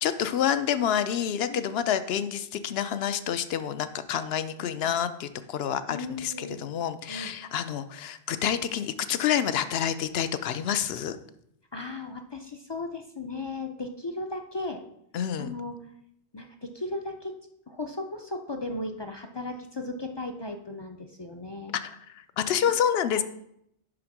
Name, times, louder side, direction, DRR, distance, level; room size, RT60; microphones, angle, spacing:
voice 1, 0.0-11.2 15.1-15.5 21.8-23.2, left 9 dB, 65° left, 12 dB, 0.8 m, -28 dB
voice 2, 4.6-5.0 5.9-6.6 7.1-7.3 11.7-14.8 15.4-15.8 16.3-17.3 17.7-21.7 23.2-23.3, left 2 dB, 35° left, 4 dB, 0.4 m, -36 dB
10.0 x 3.5 x 6.0 m, 0.75 s
omnidirectional pair, 1.2 m